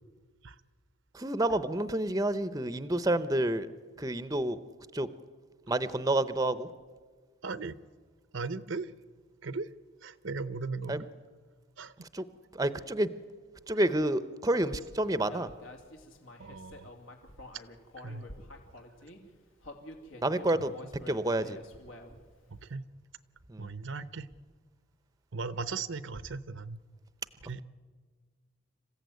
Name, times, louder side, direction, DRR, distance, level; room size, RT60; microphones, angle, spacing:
voice 1, 1.1-3.7 4.0-4.6 4.9-5.1 5.7-6.7 10.9-11.0 12.1-12.2 12.5-13.1 13.7-15.5 20.2-20.7 21.1-21.6 23.5-23.7, right 1 dB, 15° right, 14 dB, 0.7 m, -29 dB
voice 2, 7.4-7.8 8.3-8.9 9.4-9.7 10.0-11.1 11.8-11.9 16.4-16.9 18.0-18.3 20.6-20.7 22.5-22.8 23.6-24.3 25.3-26.8 27.4-27.6, right 4 dB, 65° right, 16 dB, 0.8 m, -37 dB
Human voice, 15.3-19.2 19.6-22.3, left 1 dB, 80° left, 2.9 m, -48 dB
27.0 x 15.5 x 9.4 m, 1.5 s
head